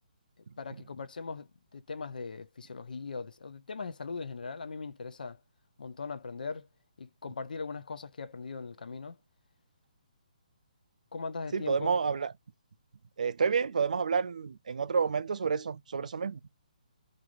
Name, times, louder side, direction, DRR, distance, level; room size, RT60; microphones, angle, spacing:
voice 1, 0.6-5.4 5.8-6.7 7.0-9.2 11.1-11.9, left 4 dB, 85° left, 0.4 m, -40 dB
voice 2, 11.5-12.3 13.2-16.4, right 5 dB, 60° right, 0.3 m, -29 dB
3.0 x 2.5 x 2.4 m
hypercardioid pair, 175°, 4 cm